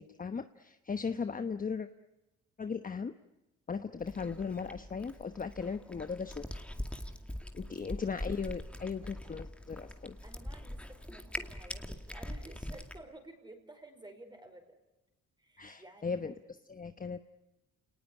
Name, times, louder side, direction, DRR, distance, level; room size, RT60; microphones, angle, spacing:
voice 1, 0.0-1.9 2.6-3.1 3.7-6.6 7.5-10.2 15.6-16.3 16.7-17.2, left 5 dB, 30° left, 9 dB, 1.0 m, -37 dB
Cat, 4.0-13.0, left 1 dB, 5° left, 2.3 m, -43 dB
voice 2, 7.7-8.0 10.2-14.8 15.4-16.3, right 1 dB, 15° right, 5 dB, 5.0 m, -53 dB
29.0 x 19.5 x 9.9 m, 1.0 s
cardioid pair, 90°, 30 cm